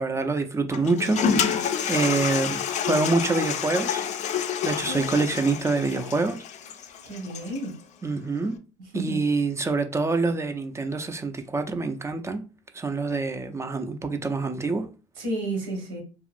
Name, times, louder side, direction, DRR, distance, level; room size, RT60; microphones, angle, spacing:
voice 1, 0.0-4.0 4.6-6.5 8.0-8.6 8.9-12.4 12.7-14.9, right 3 dB, 15° right, 0.4 m, -26 dB
Toilet flush, 0.7-7.7, left 7 dB, 45° left, 0.4 m, -28 dB
voice 2, 4.8-5.3 7.0-7.8 8.9-9.2 15.2-16.0, right 1 dB, 90° right, 1.2 m, -32 dB
2.8 x 2.4 x 2.5 m
supercardioid pair, 90°, 16 cm